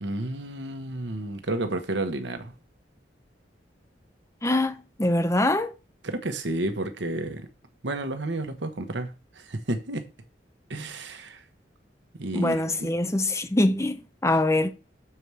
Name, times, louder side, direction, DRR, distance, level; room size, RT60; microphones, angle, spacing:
voice 1, 0.0-2.5 6.0-7.5 7.8-10.1 10.7-11.4 12.2-12.7, right 2 dB, 85° right, 1.2 m, -31 dB
voice 2, 4.4-5.7 12.3-14.7, left 1 dB, 15° left, 1.0 m, -24 dB
7.0 x 4.8 x 6.9 m
head